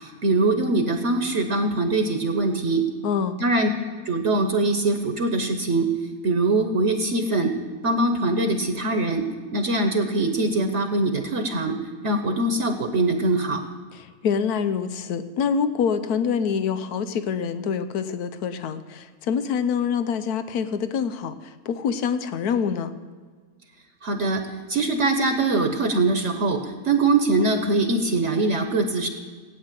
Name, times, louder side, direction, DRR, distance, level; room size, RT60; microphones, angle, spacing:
voice 1, 0.0-2.8 3.4-3.7 4.0-5.9 6.2-7.5 7.8-9.2 9.5-11.8 12.0-13.6 24.0-24.4 24.7-26.6 26.8-29.1, right 2 dB, 55° right, 5 dB, 1.3 m, -22 dB
voice 2, 3.0-3.4 13.9-22.9, left 6 dB, 85° left, 11 dB, 1.3 m, -26 dB
17.5 x 9.4 x 7.5 m, 1.5 s
omnidirectional pair, 1.6 m